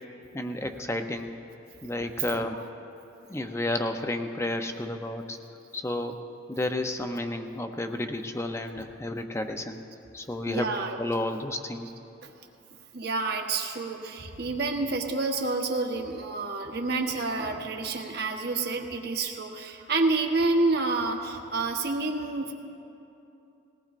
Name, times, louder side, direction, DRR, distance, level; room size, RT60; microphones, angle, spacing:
voice 1, 0.3-1.3 1.8-2.6 3.3-5.4 5.7-6.2 6.5-9.8 10.1-10.7 11.0-11.9, left 1 dB, 15° left, 6 dB, 0.6 m, -31 dB
voice 2, 2.2-2.7 8.8-8.9 10.5-11.0 12.2-12.3 12.9-22.5, right 3 dB, 55° right, 3 dB, 1.1 m, -29 dB
20.5 x 18.0 x 2.5 m, 2.8 s
head